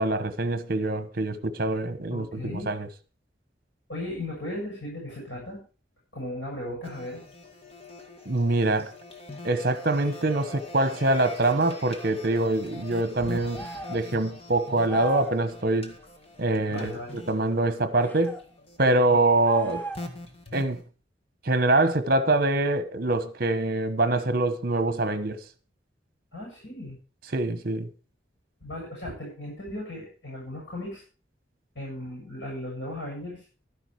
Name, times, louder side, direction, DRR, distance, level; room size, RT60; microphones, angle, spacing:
voice 1, 0.0-2.9 8.2-8.9 9.4-15.9 16.4-18.4 18.8-19.9 20.5-20.8 21.4-25.4 27.3-27.9, right 2 dB, 55° right, 1.2 m, -24 dB
voice 2, 2.1-2.7 3.9-5.6 6.1-7.2 16.7-17.2 26.3-27.0 28.6-31.0 31.7-33.4, left 1 dB, 85° left, 7.9 m, -36 dB
sound 1, 6.8-20.8, left 2 dB, 35° left, 1.8 m, -43 dB
sound 2, 13.5-14.1 14.9-15.4 18.0-18.4 19.4-20.2, right 3 dB, 10° left, 1.2 m, -36 dB
12.5 x 10.0 x 4.8 m
head